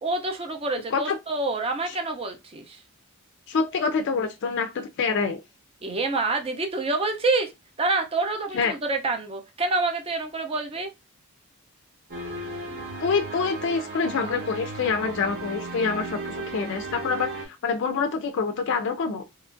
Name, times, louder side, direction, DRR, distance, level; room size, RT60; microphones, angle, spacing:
voice 1, 0.0-2.8 5.8-7.5 7.8-10.9, right 3 dB, 25° right, 0.5 m, -27 dB
voice 2, 3.5-5.4 8.5-8.7 13.0-19.2, left 5 dB, 55° left, 0.3 m, -26 dB
sound 1, 12.1-17.4, right 3 dB, 50° right, 0.9 m, -35 dB
2.8 x 2.4 x 2.4 m
head